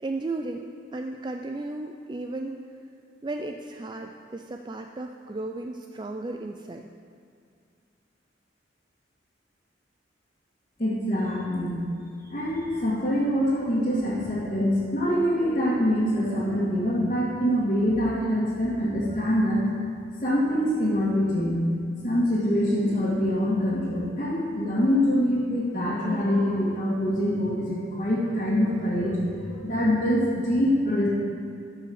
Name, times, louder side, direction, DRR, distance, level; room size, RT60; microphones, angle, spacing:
voice 1, 0.0-2.6 3.2-6.9, right 2 dB, 25° right, 4 dB, 0.3 m, -34 dB
voice 2, 10.8-11.8 12.3-19.6 20.2-21.6 22.0-31.1, equal, 40° left, -10 dB, 2.0 m, -24 dB
13.5 x 5.6 x 6.3 m, 2.3 s
head